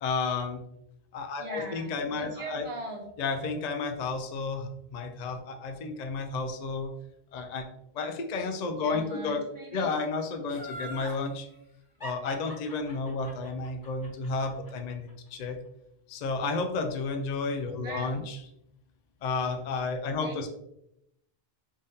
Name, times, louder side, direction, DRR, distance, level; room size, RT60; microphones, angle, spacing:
voice 1, 0.0-0.6 1.1-2.6 3.2-6.9 7.3-7.7 7.9-9.4 9.7-11.5 12.0-15.6 16.1-18.4 19.2-20.5, left 4 dB, 55° left, 5 dB, 0.5 m, -32 dB
voice 2, 1.4-3.0 8.8-9.9 17.8-18.2 20.2-20.5, right 2 dB, 35° right, -1 dB, 0.8 m, -40 dB
Laughter, 10.5-11.2 12.0-15.1 15.5-15.6, equal, 20° left, 0.9 m, -42 dB
3.5 x 3.4 x 2.7 m, 0.81 s
omnidirectional pair, 1.1 m